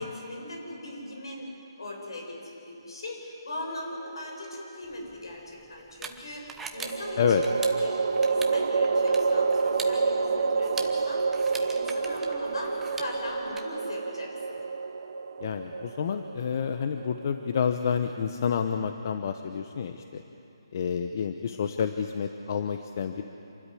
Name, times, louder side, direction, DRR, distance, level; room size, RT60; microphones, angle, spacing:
voice 1, 0.0-1.5 1.8-14.6, left 2 dB, 75° left, 1 dB, 7.1 m, -39 dB
sound 1, 3.7-4.5 6.8-18.1, right 4 dB, 70° right, 1.0 m, -28 dB
sound 2, 4.9-13.6, right 5 dB, 5° right, 1.0 m, -43 dB
voice 2, 15.4-20.2 20.7-23.2, left 7 dB, 45° left, 7 dB, 0.9 m, -29 dB
27.5 x 13.0 x 9.9 m, 2.9 s
hypercardioid pair, 160°, 3 cm